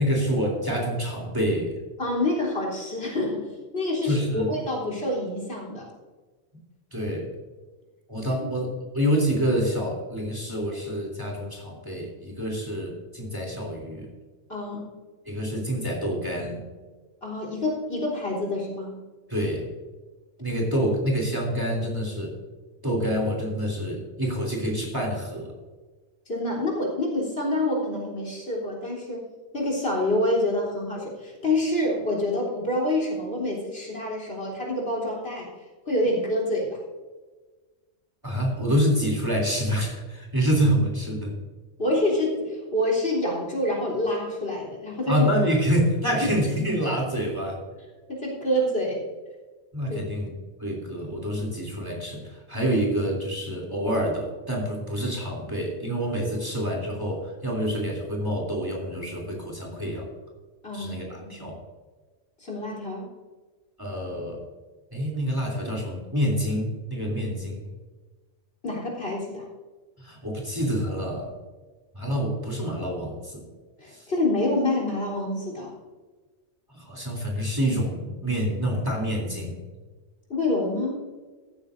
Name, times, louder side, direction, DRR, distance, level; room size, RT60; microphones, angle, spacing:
voice 1, 0.0-1.7 4.0-4.5 6.9-7.3 8.1-8.7 8.9-14.1 15.2-16.6 19.3-19.7 20.4-22.3 22.8-25.5 38.2-41.3 45.1-47.6 49.7-50.3 50.6-60.1 60.7-61.6 63.8-64.4 64.9-67.6 70.0-71.3 71.9-73.4 73.9-74.1 76.7-79.6, equal, 15° right, -1 dB, 3.1 m, -27 dB
voice 2, 2.0-5.9 14.5-14.9 17.2-18.9 26.3-29.3 29.5-35.5 35.9-36.8 41.8-45.3 48.1-49.0 49.9-50.2 60.6-60.9 61.3-61.5 62.4-63.1 68.6-69.5 73.8-75.8 80.3-81.0, left 1 dB, 55° left, -2 dB, 3.8 m, -27 dB
15.5 x 13.5 x 2.6 m, 1.3 s
omnidirectional pair, 1.3 m